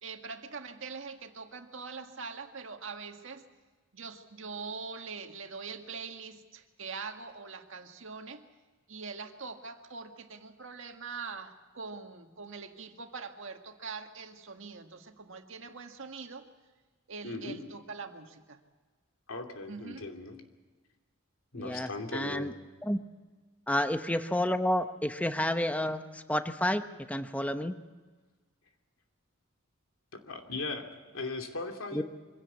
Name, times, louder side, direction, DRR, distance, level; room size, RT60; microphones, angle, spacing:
voice 1, 0.0-3.4 3.9-8.4 8.9-16.5 17.1-18.6 19.7-20.1, right 4 dB, 70° right, 5 dB, 1.8 m, -43 dB
voice 2, 17.2-17.6 19.3-20.3 21.5-22.5 30.1-32.0, left 3 dB, 85° left, 4 dB, 2.7 m, -38 dB
voice 3, 21.6-22.5 22.8-23.0 23.7-26.8 27.1-27.7 31.9-32.0, left 1 dB, 5° left, 9 dB, 0.8 m, -30 dB
24.5 x 17.0 x 8.4 m, 1.4 s
head